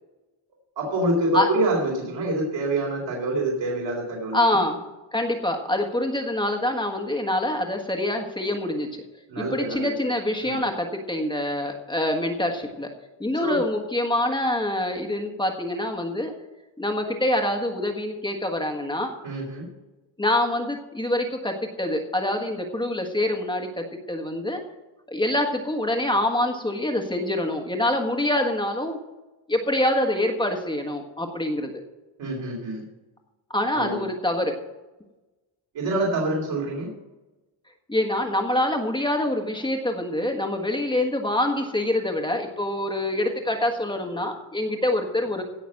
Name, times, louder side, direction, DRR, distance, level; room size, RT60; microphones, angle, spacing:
voice 1, 0.8-4.4 9.3-9.9 10.4-10.6 13.3-13.6 19.2-19.6 32.2-32.8 33.7-34.1 35.7-36.9, right 1 dB, 65° right, -3 dB, 3.9 m, -26 dB
voice 2, 4.3-4.8 5.1-8.9 9.4-12.9 13.2-16.3 16.8-19.1 20.2-24.6 25.1-29.0 29.5-31.7 33.5-34.5 37.9-45.4, left 1 dB, 10° left, 3 dB, 1.5 m, -25 dB
17.0 x 6.1 x 7.7 m, 1.1 s
wide cardioid pair, 175°, 47 cm